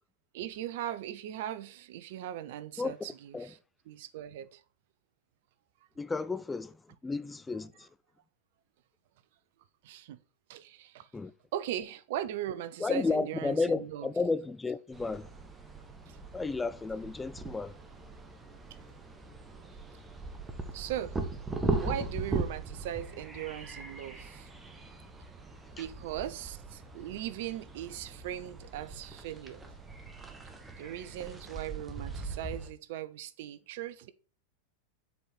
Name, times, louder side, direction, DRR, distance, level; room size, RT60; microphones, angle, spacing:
voice 1, 0.3-3.6 3.9-4.6 9.8-10.2 10.5-11.1 11.5-14.1 16.1-16.2 20.7-21.2 21.8-24.5 25.8-29.6 30.7-34.1, right 11 dB, 50° right, 0.6 m, -39 dB
voice 2, 2.8-3.5 6.0-7.9 11.1-11.3 12.8-15.3 16.3-17.7 25.8-25.9, left 3 dB, 10° left, 0.3 m, -33 dB
sound 1, 14.9-32.7, right 3 dB, 15° right, 1.1 m, -39 dB
7.1 x 4.7 x 4.1 m
figure-of-eight pair, 90°, 0 cm